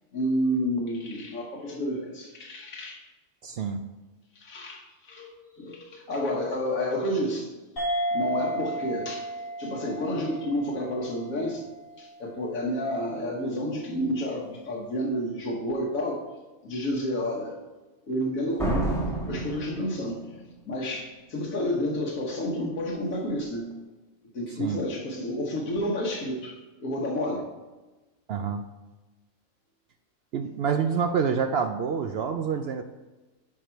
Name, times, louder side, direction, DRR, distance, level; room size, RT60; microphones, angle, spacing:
voice 1, 0.1-3.0 4.3-7.5 8.1-9.3 9.6-11.7 12.0-16.2 16.6-17.6 18.1-19.0 19.3-20.2 20.6-23.8 24.3-27.5, equal, 85° left, -2 dB, 1.6 m, -30 dB
voice 2, 3.4-3.8 24.6-24.8 28.3-28.6 30.3-32.8, right 6 dB, 65° right, 7 dB, 0.7 m, -27 dB
sound 1, 7.8-12.7, right 1 dB, 65° left, 3.4 m, -33 dB
Slam, 18.6-20.5, right 1 dB, ahead, 1.4 m, -29 dB
9.9 x 4.8 x 4.5 m, 1.2 s
omnidirectional pair, 1.4 m